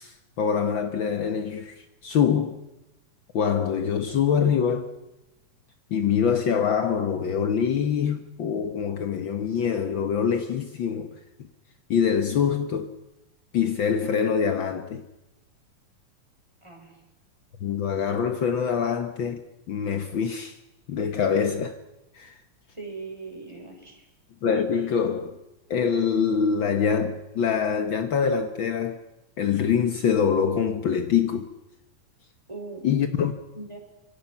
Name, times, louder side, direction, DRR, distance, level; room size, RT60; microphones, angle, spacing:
voice 1, 0.0-2.6 3.3-4.9 5.9-11.1 11.9-12.9 13.5-15.0 17.6-19.4 19.7-20.6 20.9-21.8 22.1-22.4 24.4-25.4 25.7-29.0 29.4-31.5 32.8-33.3, left 7 dB, 75° left, 1.1 m, -24 dB
voice 2, 16.6-17.0 22.7-24.1 32.5-32.9 33.5-33.8, right 3 dB, 10° right, 5.4 m, -40 dB
26.5 x 24.0 x 5.7 m
omnidirectional pair, 3.9 m